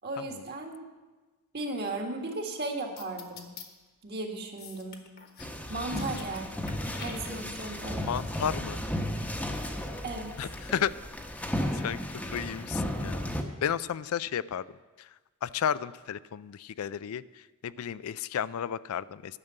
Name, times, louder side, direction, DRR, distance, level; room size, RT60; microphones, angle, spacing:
voice 1, 0.0-0.8 1.5-3.5 4.0-5.0 5.7-6.7 7.0-8.1 10.0-10.5, right 2 dB, 45° right, 2 dB, 1.7 m, -36 dB
sound 1, 3.0-3.7 4.6-5.6 5.8-6.4 6.7-7.7, left 6 dB, 45° left, 1.3 m, -46 dB
sound 2, 5.4-13.4, left 1 dB, 5° left, 0.9 m, -34 dB
voice 2, 8.1-8.8 10.4-11.0 11.7-13.3 13.6-14.7 15.0-15.1 15.4-19.4, left 8 dB, 80° left, 17 dB, 0.4 m, -33 dB
11.0 x 6.7 x 8.8 m, 1.2 s
head